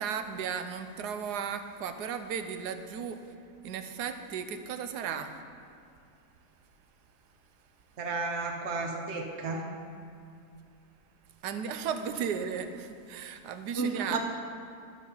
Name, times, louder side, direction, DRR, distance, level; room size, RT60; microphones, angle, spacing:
voice 1, 0.0-3.2 3.6-5.4 11.4-14.2, right 7 dB, 85° right, 9 dB, 1.2 m, -35 dB
voice 2, 8.0-9.6 13.7-14.2, right 3 dB, 50° right, 2 dB, 1.2 m, -32 dB
11.5 x 7.3 x 5.4 m, 2.4 s
omnidirectional pair, 1.7 m